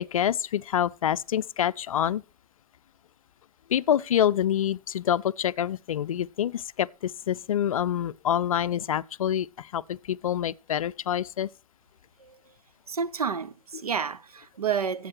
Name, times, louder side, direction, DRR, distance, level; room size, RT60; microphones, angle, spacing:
voice 1, 0.0-2.2 3.7-11.5, left 10 dB, 65° left, 0.4 m, -26 dB
voice 2, 12.9-15.1, right 6 dB, 80° right, 0.7 m, -30 dB
12.0 x 8.1 x 4.5 m
figure-of-eight pair, 115°, 19 cm